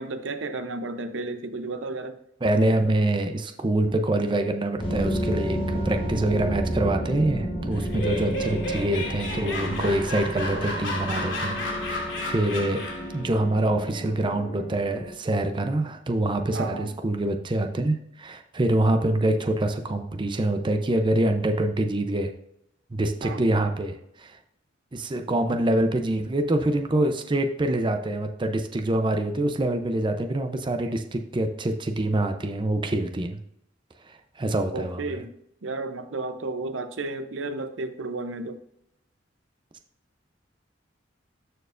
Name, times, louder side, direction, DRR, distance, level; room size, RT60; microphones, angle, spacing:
voice 1, 0.0-2.1 8.2-8.8 16.5-16.9 23.2-23.4 34.7-35.3 35.6-38.6, right 3 dB, 75° right, 9 dB, 0.7 m, -33 dB
voice 2, 2.4-12.8 13.1-22.3 22.9-24.4 24.9-33.4 34.1-35.2, right 1 dB, 25° right, 5 dB, 0.5 m, -25 dB
sound 1, 4.8-15.1, equal, 30° left, 1.4 m, -32 dB
Laughter, 7.7-13.2, left 1 dB, 75° left, 2.7 m, -32 dB
13.0 x 4.5 x 2.5 m, 0.77 s
head